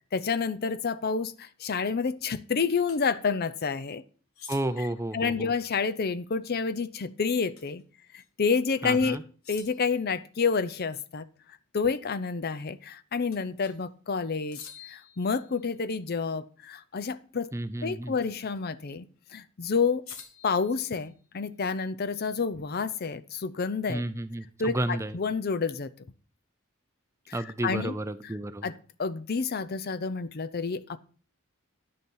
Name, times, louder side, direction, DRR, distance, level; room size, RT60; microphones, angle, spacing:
voice 1, 0.1-4.0 5.1-7.8 8.1-9.2 9.5-11.3 11.7-14.6 14.9-17.5 17.8-19.1 19.3-20.0 20.4-24.0 24.6-25.9 27.3-27.4 27.6-27.9 28.6-31.0, left 5 dB, 45° left, 0.5 m, -29 dB
sound 1, 2.9-3.0 4.3-5.0 7.6-7.8 8.2-8.3 9.4-10.0 13.3-13.8 14.5-15.9 18.2-18.6 20.1-21.4, left 7 dB, 80° left, 1.5 m, -48 dB
voice 2, 4.5-5.5 8.8-9.2 17.5-18.1 23.9-25.2 27.3-28.7, right 1 dB, 15° right, 0.5 m, -32 dB
10.5 x 6.8 x 5.5 m
head